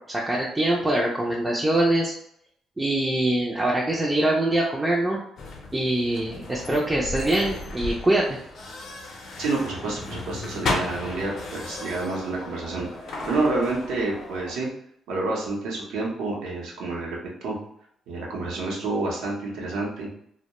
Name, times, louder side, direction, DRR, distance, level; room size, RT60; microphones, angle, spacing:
voice 1, 0.1-2.1 2.8-5.2 5.7-8.4, right 1 dB, 15° right, -3 dB, 0.4 m, -23 dB
sound 1, 5.4-14.5, left 2 dB, 65° left, 0.6 m, -34 dB
voice 2, 9.4-14.7 15.1-17.6 18.1-20.1, right 2 dB, 90° right, -3 dB, 0.7 m, -29 dB
2.2 x 2.1 x 2.9 m, 0.71 s
cardioid pair, 90°, 0 cm